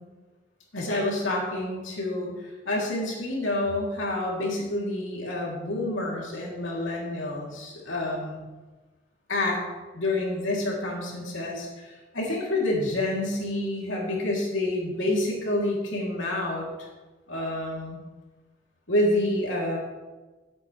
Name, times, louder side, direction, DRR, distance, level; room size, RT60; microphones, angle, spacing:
voice 1, 0.7-8.4 9.3-9.6 9.9-16.7 17.3-18.0 18.9-19.8, left 1 dB, 85° left, -3 dB, 3.2 m, -28 dB
15.0 x 8.6 x 3.3 m, 1.2 s
head